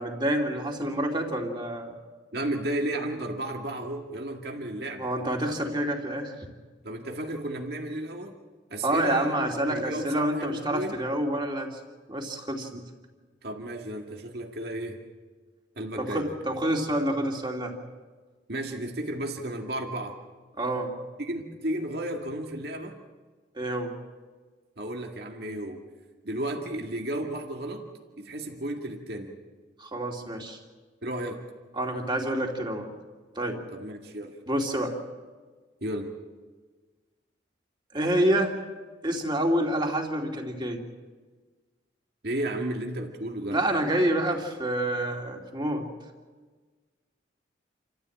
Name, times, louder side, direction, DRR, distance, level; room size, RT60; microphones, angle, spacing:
voice 1, 0.0-1.9 5.0-6.3 8.8-11.7 12.1-12.7 16.0-17.7 20.6-20.9 23.5-23.9 29.8-30.6 31.8-32.9 33.3-33.6 34.5-35.0 37.9-38.6 39.0-40.8 43.5-45.9, right 1 dB, 25° right, 1 dB, 2.8 m, -27 dB
voice 2, 2.3-5.1 6.8-8.4 8.7-9.4 9.7-11.0 12.7-12.9 13.4-15.0 15.8-16.4 18.5-20.2 21.2-23.0 24.8-25.8 26.2-27.9 28.2-29.3 31.0-31.5 33.7-34.4 35.8-36.1 42.2-43.6, right 1 dB, 60° right, 2 dB, 2.1 m, -33 dB
28.5 x 14.0 x 8.7 m, 1.4 s
head